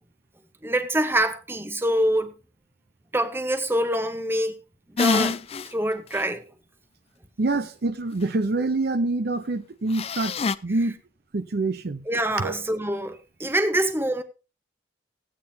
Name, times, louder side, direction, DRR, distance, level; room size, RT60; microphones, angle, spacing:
voice 1, 0.6-2.3 3.1-4.6 4.9-5.4 5.7-6.4 12.1-14.2, right 1 dB, 15° right, 1.0 m, -25 dB
sound 1, 5.0-5.7 6.1-6.2 9.9-10.6, left 4 dB, 35° left, 0.4 m, -25 dB
voice 2, 7.4-10.3 10.6-11.0 11.3-12.0 12.4-12.5, right 2 dB, 60° right, 0.7 m, -26 dB
16.0 x 8.7 x 2.8 m
head